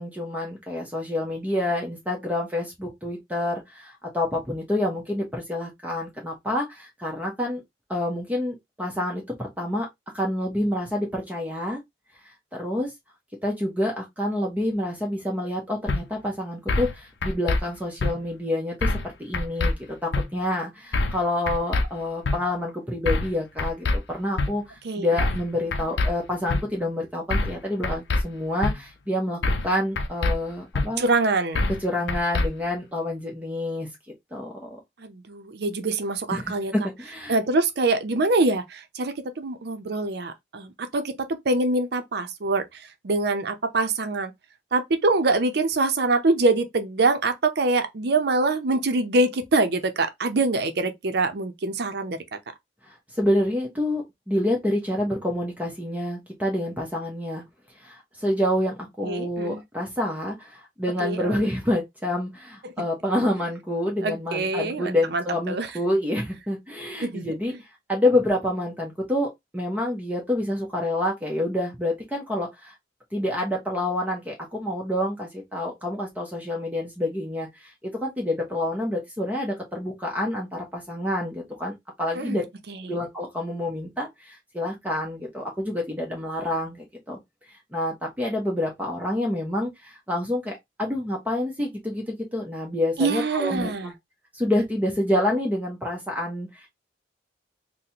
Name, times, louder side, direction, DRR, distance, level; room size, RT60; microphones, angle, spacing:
voice 1, 0.0-7.6 7.9-9.9 10.1-11.8 12.5-12.9 13.4-19.7 20.0-31.0 31.8-33.9 34.3-34.8 36.3-36.5 36.8-37.3 52.8-57.4 57.8-67.5 67.9-72.7 73.1-82.4 82.9-87.2 87.7-93.9 94.3-96.7, left 1 dB, 10° right, 0.7 m, -28 dB
sound 1, 15.9-16.0 16.7-16.9 17.2-17.6 18.0-18.1 18.8-19.1 19.3-19.7 20.1-20.2 20.9-21.2 21.5-21.8 22.2-22.4 23.1-23.3 23.6-24.0 24.4-24.5 25.2-25.4 25.7-26.1 26.5-26.6 27.3-27.6 27.8-28.2 28.6-28.7 29.4-29.7 30.0-30.3 30.7-30.9 31.5-31.8 32.1-32.5, left 2 dB, 80° left, 0.6 m, -24 dB
voice 2, 31.0-31.7 35.0-36.7 37.3-41.1 41.5-44.3 44.7-52.2 59.0-59.6 61.0-61.4 62.6-62.7 64.0-65.7 67.0-67.3 82.1-82.4 82.7-83.0 93.0-93.9, right 3 dB, 65° right, 0.6 m, -24 dB
4.1 x 2.1 x 2.8 m
head